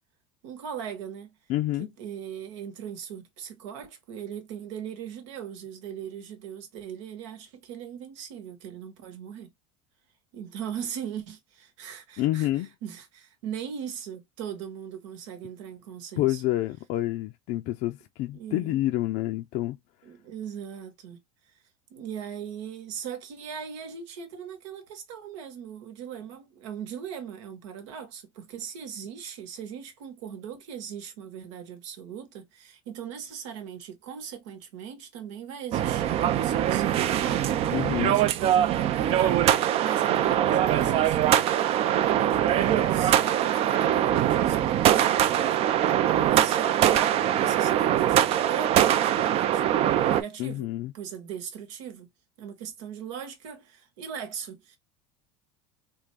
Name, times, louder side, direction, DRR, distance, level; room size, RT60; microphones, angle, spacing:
voice 1, 0.4-1.3 1.8-9.5 10.3-12.5 12.8-16.4 18.3-18.8 20.0-21.2 21.9-39.4 39.8-41.3 41.6-45.7 46.3-49.6 50.0-50.7 50.9-52.1 52.4-54.8, right 8 dB, 80° right, 1.3 m, -39 dB
voice 2, 1.5-1.9 12.2-12.7 16.2-19.8 37.7-38.2 50.4-50.9, left 15 dB, 50° left, 0.4 m, -28 dB
sound 1, 35.7-50.2, right 11 dB, 40° right, 0.4 m, -23 dB
3.7 x 2.5 x 3.2 m
supercardioid pair, 135°, 16 cm